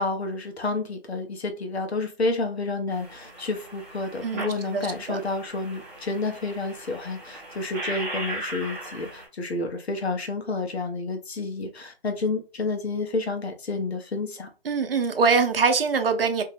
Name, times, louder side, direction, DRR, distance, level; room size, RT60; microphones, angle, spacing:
voice 1, 0.0-14.5, left 3 dB, 80° left, 0.9 m, -30 dB
sound 1, 2.9-9.3, right 1 dB, 15° right, 0.7 m, -38 dB
voice 2, 4.2-5.2 14.7-16.4, right 5 dB, 65° right, 0.6 m, -23 dB
2.7 x 2.2 x 3.2 m
hypercardioid pair, 165°, 32 cm